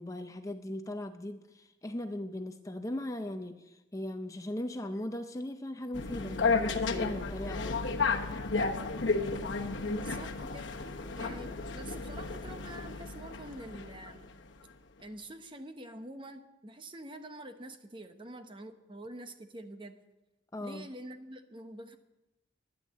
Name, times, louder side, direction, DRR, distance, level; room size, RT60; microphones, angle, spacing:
voice 1, 0.0-7.8 20.5-20.9, left 1 dB, 15° left, 7 dB, 0.5 m, -38 dB
sound 1, 5.9-14.3, left 4 dB, 70° left, 1.1 m, -33 dB
voice 2, 9.9-10.7 11.2-14.3 15.0-20.0 20.6-22.0, right 1 dB, 25° right, 7 dB, 0.9 m, -46 dB
12.5 x 10.0 x 7.3 m, 0.99 s
head